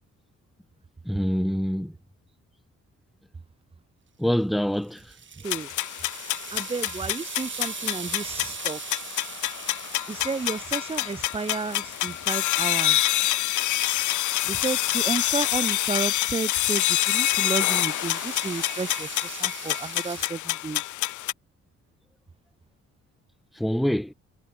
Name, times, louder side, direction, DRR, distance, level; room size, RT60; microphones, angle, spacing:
voice 1, 1.0-1.9 4.2-5.1 23.5-24.1, equal, ahead, 0.7 m, -25 dB
sound 1, 4.8-14.4 15.5-20.3, right 6 dB, 40° right, 3.6 m, -41 dB
voice 2, 5.4-5.7 6.5-9.0 10.1-13.1 14.4-20.8, right 4 dB, 20° right, 1.1 m, -32 dB
sound 2, 5.5-21.3, left 15 dB, 85° left, 1.0 m, -27 dB
cardioid pair, 115°, 29 cm